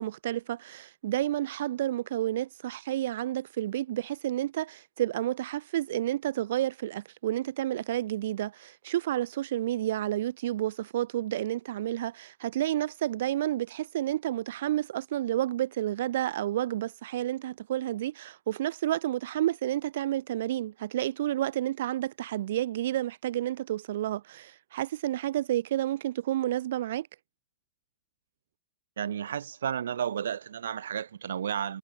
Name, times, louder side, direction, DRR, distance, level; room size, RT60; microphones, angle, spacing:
voice 1, 0.0-27.1, right 13 dB, 60° right, 1.8 m, -30 dB
voice 2, 29.0-31.8, right 9 dB, 85° right, 1.4 m, -32 dB
hypercardioid pair, 155°, 0 cm